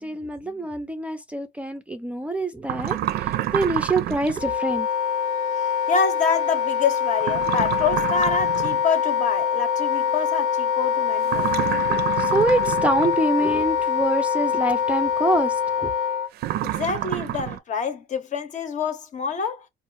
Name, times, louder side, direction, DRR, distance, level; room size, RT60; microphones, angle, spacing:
voice 1, 0.0-4.9 11.9-15.9, right 1 dB, 10° right, 0.4 m, -25 dB
sound 1, 2.6-4.5 7.2-8.9 11.2-13.2 16.4-17.6, right 13 dB, 70° right, 0.4 m, -28 dB
Wind instrument woodwind instrument, 4.3-16.3, left 7 dB, 85° left, 0.7 m, -24 dB
voice 2, 5.9-11.5 16.6-19.7, left 5 dB, 45° left, 0.8 m, -26 dB
4.0 x 2.4 x 3.1 m
cardioid pair, 110°, 17 cm